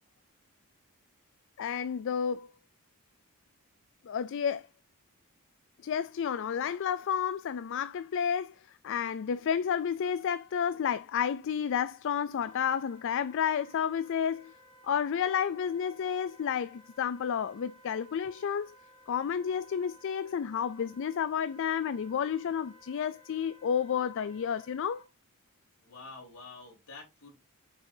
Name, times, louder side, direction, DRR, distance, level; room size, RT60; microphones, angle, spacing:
voice 1, 1.6-2.5 4.1-4.6 5.8-14.5 14.8-18.8 19.1-25.0, left 7 dB, 55° left, 0.3 m, -31 dB
Wind instrument woodwind instrument, 12.4-25.1, right 1 dB, 20° right, 1.5 m, -58 dB
voice 2, 25.8-27.4, left 3 dB, 75° left, 3.8 m, -48 dB
6.6 x 6.1 x 2.7 m
head